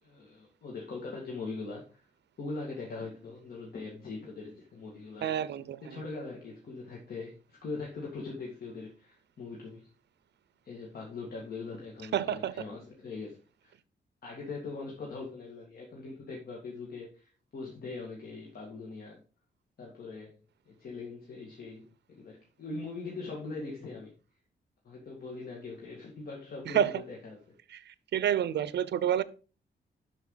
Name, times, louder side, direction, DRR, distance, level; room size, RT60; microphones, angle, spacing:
voice 1, 0.0-2.1 2.4-5.3 5.8-9.9 10.6-13.7 14.2-19.2 19.8-20.4 20.7-24.1 24.8-27.4, left 3 dB, 55° left, 2.2 m, -41 dB
voice 2, 5.2-6.0 12.1-12.5 26.7-26.9 27.7-29.2, right 10 dB, 70° right, 0.6 m, -29 dB
11.5 x 5.2 x 4.0 m
wide cardioid pair, 140°, 18 cm